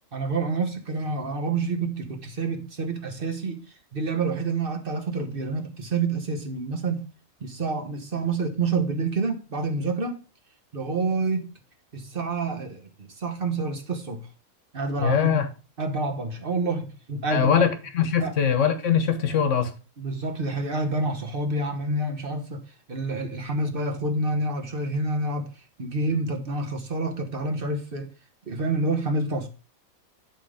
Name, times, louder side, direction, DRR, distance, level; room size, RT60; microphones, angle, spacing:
voice 1, 0.1-7.1 7.4-10.2 10.7-11.5 11.9-14.3 14.7-15.5 15.8-17.6 18.2-18.4 20.0-28.1 28.5-29.5, right 3 dB, 40° right, 1.2 m, -28 dB
voice 2, 15.0-15.5 17.3-19.7, left 7 dB, 60° left, 1.4 m, -22 dB
10.5 x 3.8 x 4.9 m
omnidirectional pair, 1.5 m